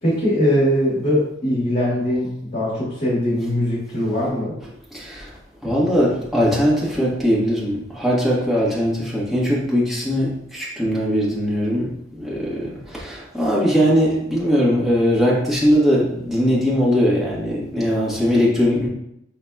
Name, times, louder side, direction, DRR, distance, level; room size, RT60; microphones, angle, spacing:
voice 1, 0.0-4.5, equal, 50° left, -8 dB, 1.5 m, -21 dB
voice 2, 4.9-5.3 5.6-18.9, equal, ahead, -7 dB, 1.3 m, -20 dB
5.6 x 4.0 x 2.3 m, 0.77 s
head